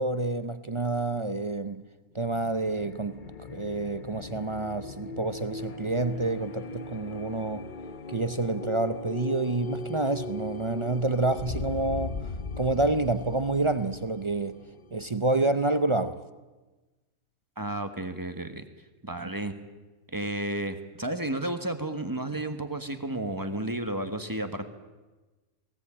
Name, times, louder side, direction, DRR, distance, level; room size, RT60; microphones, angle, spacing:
voice 1, 0.0-1.8 2.1-3.2 3.5-7.6 8.1-12.3 12.6-14.6 14.9-16.2 19.2-19.3, right 2 dB, 35° right, 11 dB, 0.4 m, -28 dB
sound 1, 2.1-15.6, left 3 dB, 40° left, 0.9 m, -39 dB
voice 2, 17.6-18.6 19.0-19.5 20.1-24.6, right 1 dB, 15° right, 8 dB, 1.3 m, -32 dB
19.0 x 18.5 x 8.8 m, 1.2 s
omnidirectional pair, 1.5 m